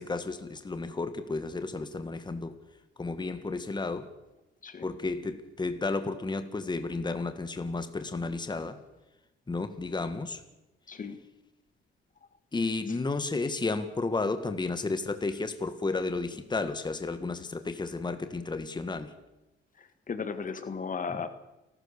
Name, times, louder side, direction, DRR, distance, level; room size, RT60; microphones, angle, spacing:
voice 1, 0.0-2.5 3.0-4.1 4.8-8.8 9.5-10.4 12.5-19.1 21.1-21.2, left 3 dB, 20° left, 9 dB, 1.7 m, -32 dB
voice 2, 10.9-11.2 19.8-21.3, left 5 dB, 40° left, 10 dB, 1.8 m, -35 dB
29.5 x 13.0 x 6.8 m, 0.98 s
cardioid pair, 90°, 20 cm